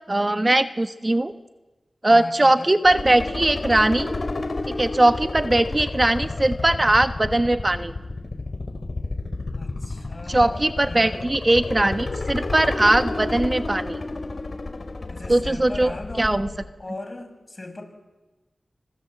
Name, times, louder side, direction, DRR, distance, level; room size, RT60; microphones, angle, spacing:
voice 1, 0.1-1.3 2.0-4.1 4.8-7.9 10.3-14.0 15.3-16.5, right 1 dB, 30° right, 9 dB, 1.2 m, -20 dB
voice 2, 2.1-2.8 9.5-11.3 15.1-16.5 16.8-17.8, left 2 dB, 40° left, 6 dB, 6.2 m, -38 dB
sound 1, 2.8-16.6, left 2 dB, 60° left, 3.2 m, -31 dB
28.5 x 25.0 x 7.9 m, 1.1 s
cardioid pair, 40°, 0 cm